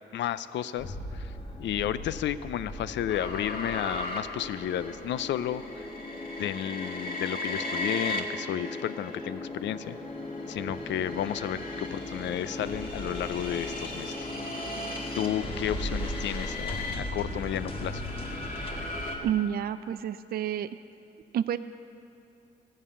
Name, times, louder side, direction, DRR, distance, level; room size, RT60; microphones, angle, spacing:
voice 1, 0.1-1.3 1.6-5.9 6.4-10.0 10.5-14.3 15.1-18.0, left 11 dB, 65° left, 15 dB, 0.5 m, -32 dB
sound 1, 0.8-19.3, left 1 dB, 25° left, 1.4 m, -38 dB
sound 2, 3.1-9.3 9.9-19.2, left 2 dB, 45° left, 1.6 m, -38 dB
voice 2, 19.2-20.7 21.3-21.6, right 10 dB, 50° right, 12 dB, 0.4 m, -29 dB
14.5 x 5.5 x 8.4 m, 2.6 s
cardioid pair, 90°, 20 cm